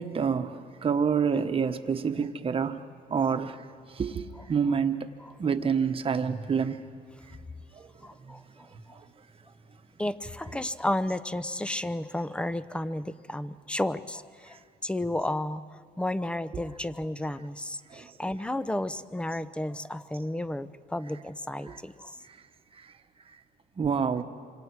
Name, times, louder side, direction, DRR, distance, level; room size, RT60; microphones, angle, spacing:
voice 1, 0.0-2.8 3.1-3.6 3.9-5.1 5.4-6.8 7.7-7.9 8.2-8.4 8.7-9.1 17.9-18.1 21.7-21.8 23.8-24.2, right 6 dB, 35° right, 8 dB, 1.2 m, -28 dB
voice 2, 8.0-8.7 10.0-22.2, left 1 dB, 5° left, 14 dB, 0.7 m, -32 dB
27.0 x 25.5 x 4.7 m, 2.5 s
cardioid pair, 110°, 17 cm